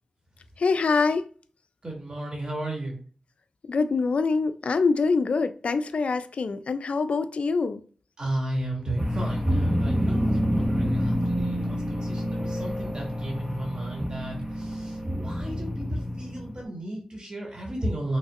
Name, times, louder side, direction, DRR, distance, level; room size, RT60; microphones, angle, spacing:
voice 1, 0.6-1.3 3.7-7.8, left 4 dB, 80° left, 0.4 m, -24 dB
voice 2, 1.8-3.0 8.2-18.2, right 1 dB, 45° right, 2.2 m, -34 dB
sound 1, 9.0-16.6, equal, 25° right, 1.7 m, -28 dB
5.3 x 3.2 x 2.5 m
cardioid pair, 55°, 2 cm